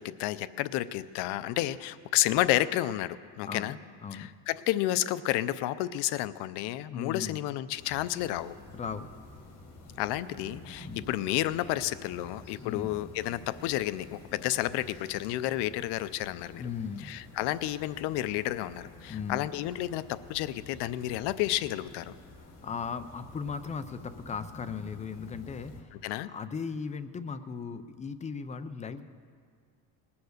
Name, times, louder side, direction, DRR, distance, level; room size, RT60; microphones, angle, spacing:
voice 1, 0.0-3.8 4.1-8.6 10.0-16.6 17.0-22.1 26.0-26.3, left 15 dB, 90° left, 16 dB, 0.6 m, -31 dB
voice 2, 3.4-4.3 6.9-7.4 8.7-9.1 10.8-11.1 12.6-12.9 16.6-17.1 19.1-19.5 22.4-26.0 26.3-29.1, left 6 dB, 20° left, 11 dB, 0.4 m, -37 dB
sound 1, 7.8-25.8, left 2 dB, 75° left, 2.8 m, -50 dB
20.0 x 7.1 x 6.5 m, 2.1 s
cardioid pair, 150°, 39 cm